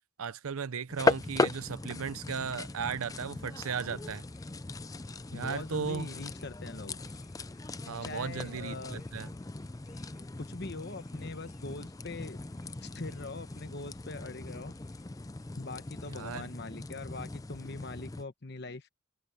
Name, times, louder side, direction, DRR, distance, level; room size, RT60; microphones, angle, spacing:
voice 1, 0.2-4.2 5.3-6.1 7.9-9.3 16.0-16.5, right 6 dB, 85° right, 0.6 m, -36 dB
sound 1, 0.9-18.2, left 2 dB, 15° left, 0.4 m, -38 dB
sound 2, 3.9-16.7, left 2 dB, 30° left, 5.4 m, -67 dB
voice 2, 5.3-7.0 8.0-9.0 10.4-12.4 12.8-14.7 15.6-18.9, left 3 dB, 50° left, 1.1 m, -42 dB
head